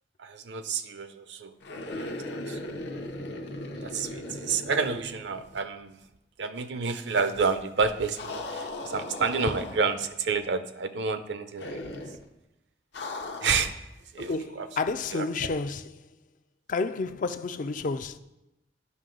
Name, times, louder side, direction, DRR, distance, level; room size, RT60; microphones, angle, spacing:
voice 1, 0.2-1.5 2.0-2.9 3.8-6.0 6.4-12.0 13.4-13.7 14.1-14.7 15.1-15.5, right 5 dB, 75° right, 0.5 m, -30 dB
sound 1, 1.6-5.8 6.0-6.1 8.1-10.2 11.6-12.3 12.9-13.8, left 2 dB, 70° left, 0.7 m, -38 dB
voice 2, 14.3-15.8 16.7-18.2, left 4 dB, 50° left, 0.4 m, -30 dB
9.4 x 5.4 x 3.8 m
head